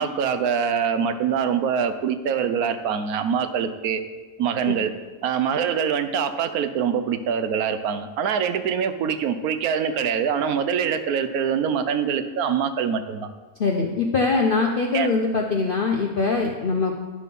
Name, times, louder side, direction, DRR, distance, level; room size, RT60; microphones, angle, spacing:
voice 1, 0.0-4.0 4.4-4.9 5.2-13.3 14.9-15.1, right 7 dB, 80° right, 10 dB, 1.2 m, -24 dB
voice 2, 13.6-17.0, left 4 dB, 45° left, 1 dB, 0.8 m, -22 dB
10.5 x 6.2 x 5.3 m, 1.3 s
omnidirectional pair, 1.6 m